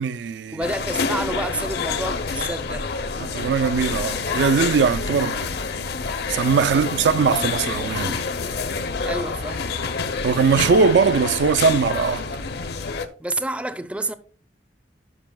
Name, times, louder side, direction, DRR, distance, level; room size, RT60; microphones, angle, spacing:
voice 1, 0.0-0.6 3.2-5.5 6.3-8.2 10.2-12.3, right 5 dB, 90° right, 0.4 m, -20 dB
voice 2, 0.5-2.9 6.7-6.8 9.0-9.7 13.2-14.1, right 1 dB, 5° right, 0.4 m, -29 dB
sound 1, 0.6-13.1, left 4 dB, 65° left, 0.6 m, -27 dB
12.0 x 5.3 x 2.2 m
head